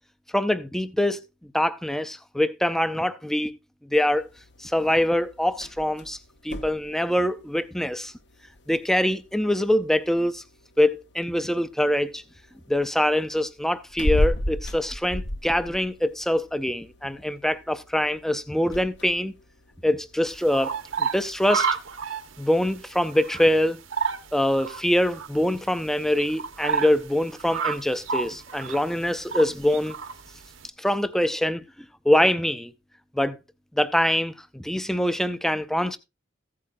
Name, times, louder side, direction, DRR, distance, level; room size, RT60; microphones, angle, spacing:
voice 1, 0.3-1.2 1.5-3.5 3.9-4.3 4.6-6.2 6.4-8.1 8.7-10.4 10.8-12.2 12.7-19.3 19.8-20.7 21.0-21.7 22.4-23.8 24.3-30.0 30.8-31.6 32.1-32.7 33.1-33.4 33.7-36.0, left 1 dB, ahead, 0.5 m, -24 dB
sound 1, 4.1-20.8, left 1 dB, 60° left, 1.0 m, -35 dB
sound 2, 20.2-30.7, right 5 dB, 85° right, 1.2 m, -32 dB
15.0 x 8.6 x 2.5 m
head